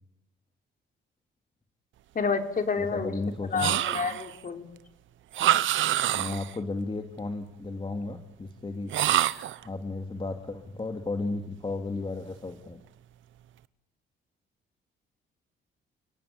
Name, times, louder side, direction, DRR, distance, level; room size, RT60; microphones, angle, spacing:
voice 1, 2.1-3.1 3.5-4.7, left 5 dB, 45° left, 6 dB, 4.2 m, -29 dB
voice 2, 2.8-3.8 6.1-8.9 9.6-12.8, left 3 dB, 25° left, 6 dB, 2.3 m, -34 dB
sound 1, 3.6-4.4 5.3-6.6 8.9-9.6, right 13 dB, 80° right, 1.0 m, -26 dB
29.5 x 19.0 x 8.4 m, 0.84 s
cardioid pair, 90°, 20 cm